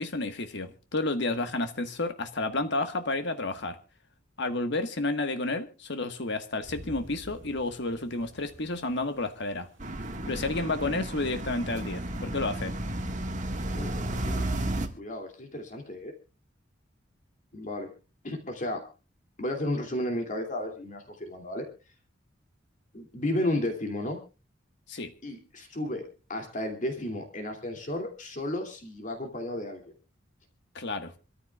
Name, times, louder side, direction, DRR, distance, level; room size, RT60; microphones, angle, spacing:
voice 1, 0.0-3.8 4.4-9.7 10.3-12.7 24.9-25.1 30.7-31.1, left 2 dB, 65° left, 1.6 m, -31 dB
sound 1, 6.6-14.0, equal, 70° right, 3.2 m, -51 dB
sound 2, 9.8-14.9, right 1 dB, 40° right, 1.7 m, -33 dB
voice 2, 13.7-14.5 15.0-16.1 17.5-17.9 18.2-18.9 19.4-21.7 22.9-24.2 25.2-29.9, left 1 dB, 40° left, 2.7 m, -33 dB
26.5 x 14.0 x 2.4 m
head